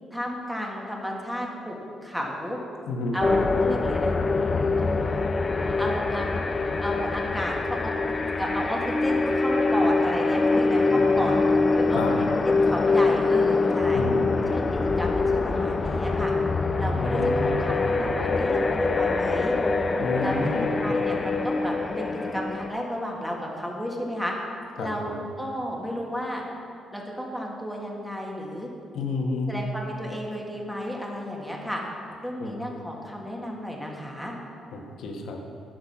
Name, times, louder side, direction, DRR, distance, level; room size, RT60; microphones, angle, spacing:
voice 1, 0.1-1.8 2.0-2.6 3.1-4.1 4.8-5.3 5.8-6.3 6.8-7.9 8.4-11.4 11.8-14.0 14.5-16.3 16.8-19.6 20.2-24.3 24.8-26.4 26.9-28.7 29.5-31.8 32.2-34.3, equal, ahead, -2 dB, 1.9 m, -32 dB
voice 2, 2.8-3.2 11.9-12.1 13.9-14.3 17.0-17.6 20.0-20.7 24.8-25.2 28.9-29.5 32.4-32.5 34.7-35.4, left 3 dB, 75° left, 1 dB, 1.4 m, -30 dB
sound 1, 3.2-22.7, left 3 dB, 30° left, 0.6 m, -24 dB
10.5 x 6.6 x 5.9 m, 2.5 s
cardioid pair, 90°, 0 cm